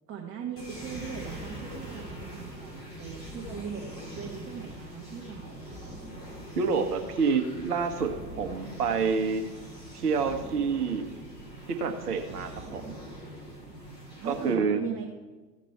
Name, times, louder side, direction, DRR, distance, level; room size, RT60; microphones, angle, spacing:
voice 1, 0.0-5.8 14.2-15.1, right 7 dB, 25° right, 0 dB, 1.2 m, -39 dB
sound 1, 0.6-14.5, right 1 dB, 75° left, 3.0 m, -43 dB
voice 2, 6.6-8.1 8.4-9.4 9.9-11.1 11.7-12.9 14.2-14.8, right 5 dB, 65° right, 6 dB, 1.4 m, -28 dB
14.5 x 5.2 x 4.4 m, 1.3 s
figure-of-eight pair, 85°, 50 cm